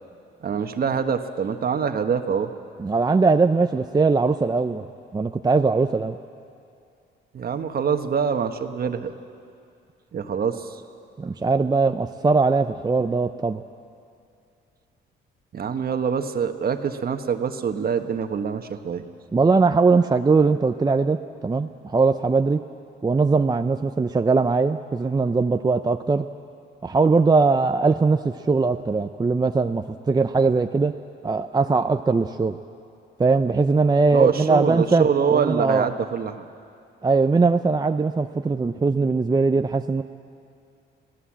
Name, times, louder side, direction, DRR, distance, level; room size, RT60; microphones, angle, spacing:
voice 1, 0.4-2.5 7.3-9.1 10.1-10.8 15.5-19.0 34.1-36.5, right 6 dB, 50° right, 7 dB, 1.3 m, -25 dB
voice 2, 2.8-4.9 5.1-6.2 11.2-13.6 19.3-22.6 23.0-26.3 26.8-30.9 31.2-32.6 33.2-35.1 35.3-35.9 37.0-40.0, right 4 dB, 20° right, 8 dB, 0.6 m, -20 dB
25.5 x 17.0 x 7.5 m, 2.5 s
cardioid pair, 90°, 20 cm